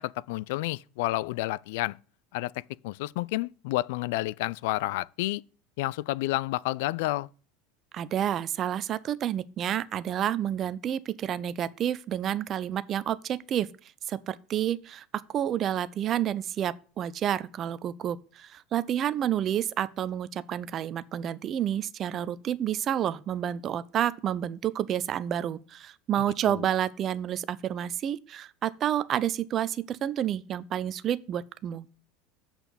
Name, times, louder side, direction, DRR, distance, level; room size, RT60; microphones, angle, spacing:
voice 1, 0.0-2.0 2.3-2.5 2.8-5.4 5.8-7.3 26.2-26.6, left 18 dB, 65° left, 0.3 m, -30 dB
voice 2, 7.9-13.7 14.1-15.0 15.3-31.9, right 10 dB, 40° right, 0.6 m, -29 dB
7.8 x 4.3 x 7.0 m
hypercardioid pair, 75°, 0 cm